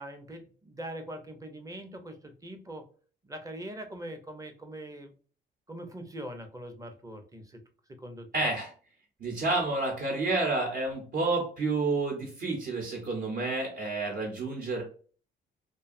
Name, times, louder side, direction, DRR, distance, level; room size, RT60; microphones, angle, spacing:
voice 1, 0.0-2.8 3.2-5.1 5.7-7.6 8.0-8.5, right 1 dB, 15° right, 7 dB, 0.5 m, -42 dB
voice 2, 8.3-8.7 9.2-14.8, right 3 dB, 55° right, -1 dB, 0.9 m, -29 dB
2.5 x 2.2 x 2.5 m, 0.41 s
cardioid pair, 90°, 20 cm